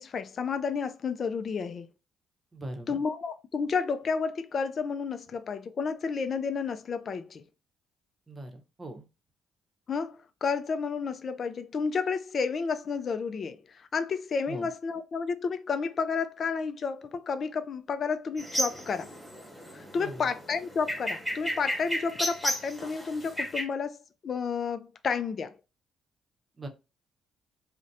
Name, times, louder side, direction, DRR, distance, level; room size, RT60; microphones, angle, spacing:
voice 1, 0.0-1.9 2.9-7.4 9.9-19.1 19.7-25.5, left 5 dB, 50° left, 0.3 m, -31 dB
voice 2, 2.5-3.0 8.3-9.0 14.5-14.7 19.9-20.3 26.6-26.7, right 1 dB, 30° right, 0.7 m, -40 dB
sound 1, 18.4-23.6, equal, 5° right, 1.3 m, -34 dB
2.5 x 2.1 x 3.9 m
cardioid pair, 75°, 0 cm